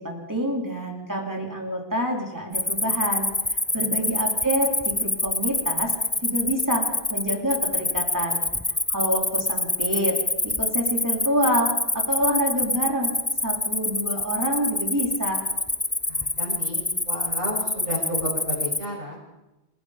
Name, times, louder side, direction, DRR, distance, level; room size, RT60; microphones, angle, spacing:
voice 1, 0.0-5.9 6.2-6.8 7.1-8.4 8.9-10.2 10.4-13.1 13.4-15.4, equal, 15° right, 0 dB, 3.8 m, -27 dB
Cricket, 2.5-18.9, left 2 dB, 15° left, 0.4 m, -26 dB
voice 2, 3.7-4.1 16.1-19.2, equal, 50° right, -8 dB, 7.2 m, -33 dB
28.5 x 18.0 x 5.2 m, 1.0 s
omnidirectional pair, 1.1 m